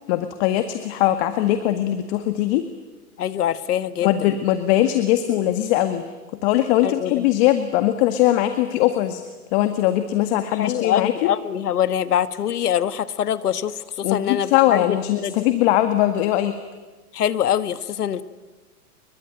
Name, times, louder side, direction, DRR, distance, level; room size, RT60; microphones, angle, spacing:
voice 1, 0.1-2.7 4.0-6.0 6.4-9.2 9.5-11.3 14.0-16.6, left 13 dB, 45° left, 8 dB, 1.9 m, -20 dB
voice 2, 3.2-4.4 6.8-7.2 10.6-15.4 17.1-18.2, left 10 dB, 80° left, 13 dB, 1.6 m, -24 dB
26.5 x 23.0 x 9.0 m, 1.2 s
hypercardioid pair, 125°, 45 cm